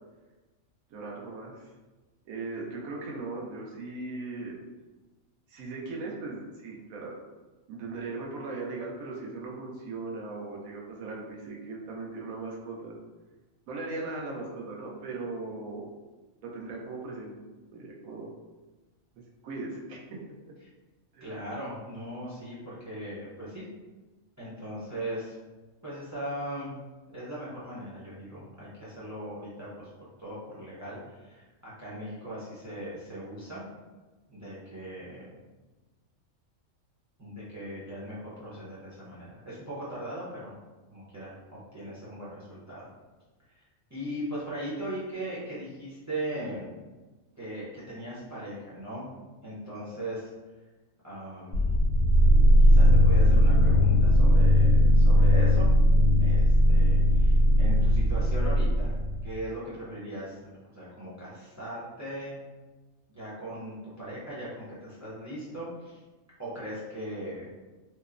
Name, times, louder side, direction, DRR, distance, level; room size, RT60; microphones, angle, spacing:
voice 1, 0.9-1.7 2.3-4.6 5.5-7.1 7.7-12.9 13.7-15.9 16.4-17.3 17.7-18.3 19.4-20.2 21.1-21.4, right 3 dB, 85° right, -2 dB, 1.0 m, -38 dB
voice 2, 21.2-23.6 24.4-25.4 25.8-26.7 27.1-29.9 30.2-33.6 34.3-35.2 37.2-40.6 40.9-41.4 41.7-42.8 43.9-46.7 47.4-49.1 49.4-50.3 51.0-51.9 52.6-55.7 56.2-58.9 59.2-62.4 63.1-66.0 66.4-67.5, right 1 dB, 20° right, -9 dB, 0.4 m, -39 dB
sound 1, 51.5-59.4, equal, 60° left, 0.8 m, -19 dB
2.9 x 2.0 x 2.4 m, 1.2 s
omnidirectional pair, 1.4 m